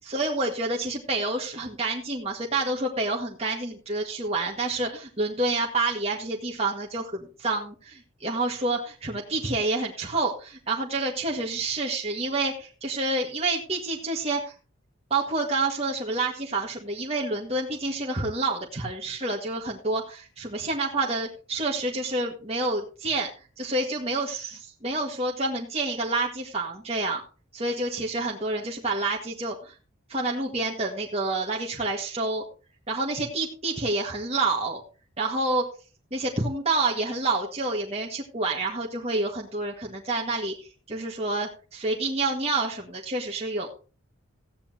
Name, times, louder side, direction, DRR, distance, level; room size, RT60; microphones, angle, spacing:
voice 1, 0.0-14.5 15.1-23.3 23.6-27.2 27.5-29.7 30.1-32.4 32.9-34.8 35.2-35.6 36.1-40.5 40.9-43.7, right 2 dB, 30° right, -1 dB, 1.8 m, -28 dB
15.5 x 9.9 x 2.9 m, 0.35 s
head